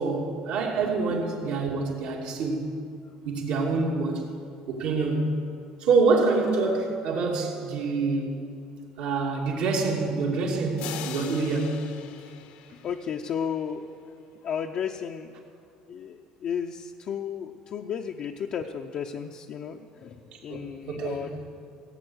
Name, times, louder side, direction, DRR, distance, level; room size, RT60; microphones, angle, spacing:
voice 1, 0.0-2.7 3.2-4.3 4.7-5.4 5.8-8.3 9.0-11.8 20.3-21.3, right 3 dB, 70° right, -1 dB, 2.7 m, -26 dB
sound 1, 10.8-13.6, left 9 dB, 80° left, 1.1 m, -41 dB
voice 2, 12.8-13.9 14.4-15.3 15.9-20.2 20.4-21.5, left 7 dB, 50° left, 1 dB, 0.6 m, -33 dB
17.0 x 8.5 x 8.0 m, 2.4 s
cardioid pair, 110°, 2 cm